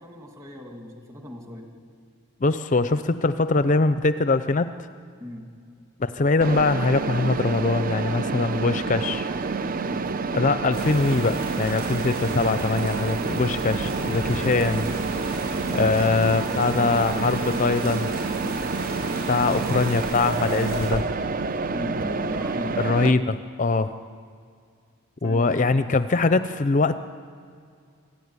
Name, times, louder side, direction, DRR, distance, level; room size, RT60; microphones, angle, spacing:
voice 1, 0.0-1.7 5.2-5.4 7.9-8.7 9.0-9.4 9.8-10.0 18.4-18.7 19.4-19.8 21.7-22.8 25.2-25.6 26.1-26.2, left 1 dB, 15° right, 2 dB, 2.4 m, -38 dB
voice 2, 2.4-4.7 6.0-9.3 10.3-14.9 15.7-18.1 19.3-21.1 22.8-23.9 25.2-27.0, left 3 dB, 35° left, 12 dB, 0.5 m, -22 dB
Mechanisms, 6.4-23.1, right 4 dB, 40° right, 0.6 m, -28 dB
sound 1, 10.7-20.9, right 2 dB, 80° right, 7.3 m, -35 dB
24.5 x 14.5 x 9.7 m, 2.3 s
head